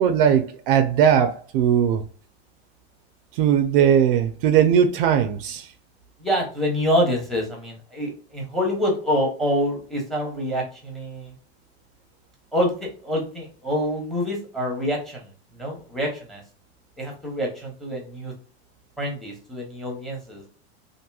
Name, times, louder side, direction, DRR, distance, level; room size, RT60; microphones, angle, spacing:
voice 1, 0.0-2.0 3.3-5.7, right 8 dB, 55° right, 0.5 m, -19 dB
voice 2, 6.2-11.3 12.5-15.3 15.5-16.4 17.0-18.3 19.0-20.4, equal, ahead, 0.8 m, -26 dB
2.9 x 2.5 x 2.3 m
supercardioid pair, 150°, 33 cm